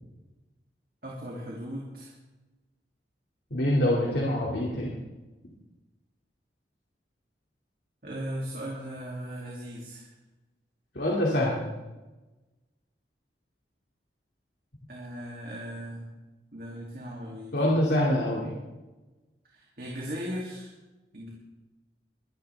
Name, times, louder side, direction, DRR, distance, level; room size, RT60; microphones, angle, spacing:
voice 1, 1.0-2.1 8.0-10.1 14.9-16.1 16.5-17.5 19.4-20.7 21.1-21.3, equal, 55° right, -4 dB, 2.8 m, -37 dB
voice 2, 3.5-5.0 10.9-11.7 17.5-18.6, left 1 dB, 70° left, -4 dB, 2.6 m, -25 dB
22.5 x 11.5 x 3.5 m, 1.1 s
head